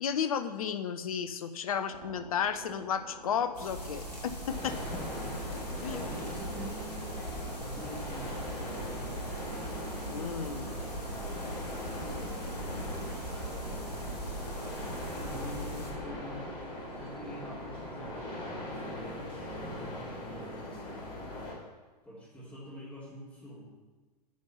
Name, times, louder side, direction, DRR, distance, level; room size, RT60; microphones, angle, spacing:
voice 1, 0.0-4.7 5.8-6.0 10.1-10.7, left 7 dB, 60° left, 11 dB, 0.8 m, -33 dB
sound 1, 1.9-18.6, right 3 dB, 75° right, 1.0 m, -49 dB
sound 2, 3.5-15.9, right 1 dB, 75° left, 2.6 m, -40 dB
sound 3, 4.5-21.5, left 1 dB, 40° left, 3.5 m, -41 dB
voice 2, 4.6-5.4 5.8-9.3 10.7-11.4 11.8-12.5 13.2-14.2 14.6-16.5 16.9-21.0 22.0-23.6, left 1 dB, 10° left, -10 dB, 3.2 m, -47 dB
10.5 x 5.3 x 7.3 m, 1.3 s
figure-of-eight pair, 100°, 21 cm